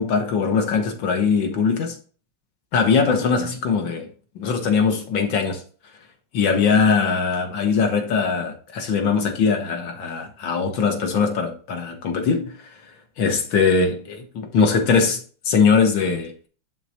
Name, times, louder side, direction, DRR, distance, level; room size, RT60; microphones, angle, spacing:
voice 1, 0.0-2.0 2.7-4.1 4.3-5.6 6.3-12.7 13.2-16.5, left 5 dB, 70° left, 1.8 m, -21 dB
11.5 x 3.8 x 2.8 m
omnidirectional pair, 2.2 m